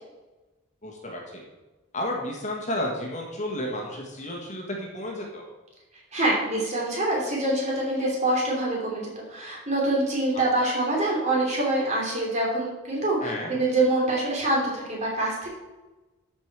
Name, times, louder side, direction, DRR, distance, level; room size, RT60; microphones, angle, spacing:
voice 1, 0.8-1.4 1.9-5.5 10.6-10.7 13.2-13.5, left 1 dB, 35° left, 0 dB, 1.6 m, -32 dB
voice 2, 6.1-15.5, right 1 dB, 35° right, -3 dB, 2.9 m, -25 dB
12.5 x 5.2 x 4.7 m, 1.1 s
head